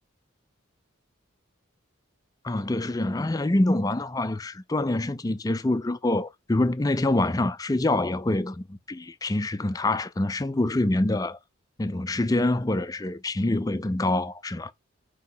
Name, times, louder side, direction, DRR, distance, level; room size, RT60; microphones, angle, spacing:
voice 1, 2.4-11.4 11.8-14.7, left 2 dB, 15° left, 0.4 m, -26 dB
5.9 x 3.1 x 5.6 m
head